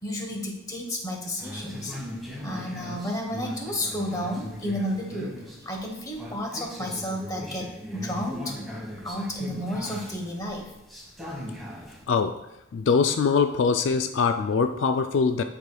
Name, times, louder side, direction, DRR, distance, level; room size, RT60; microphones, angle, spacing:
voice 1, 0.0-2.0 2.4-8.6 9.0-10.7, equal, 20° left, 1 dB, 1.1 m, -32 dB
sound 1, 1.4-12.0, left 1 dB, ahead, 1.3 m, -39 dB
voice 2, 12.1-12.5 12.7-15.4, left 5 dB, 70° left, 8 dB, 0.3 m, -23 dB
11.0 x 4.9 x 2.3 m, 0.90 s
head